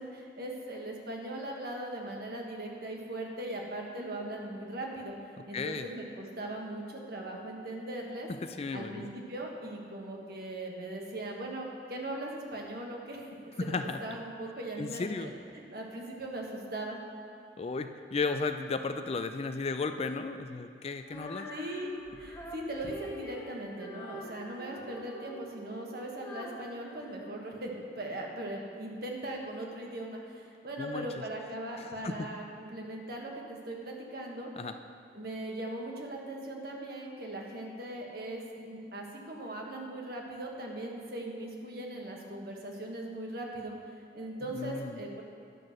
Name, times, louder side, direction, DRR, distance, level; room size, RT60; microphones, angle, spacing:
voice 1, 0.0-5.1 5.5-8.3 8.7-17.0 21.5-21.9 22.2-34.5 35.1-43.7 44.1-45.2, right 1 dB, 60° right, 0 dB, 1.4 m, -39 dB
voice 2, 5.5-5.9 8.4-9.1 13.6-14.0 14.8-15.3 17.6-21.5 30.8-31.2 31.8-32.3 34.6-34.7 44.5-45.0, left 4 dB, 35° left, 8 dB, 0.4 m, -34 dB
Female singing, 21.0-28.1, equal, 15° left, 1.2 m, -45 dB
11.0 x 6.2 x 6.4 m, 2.4 s
head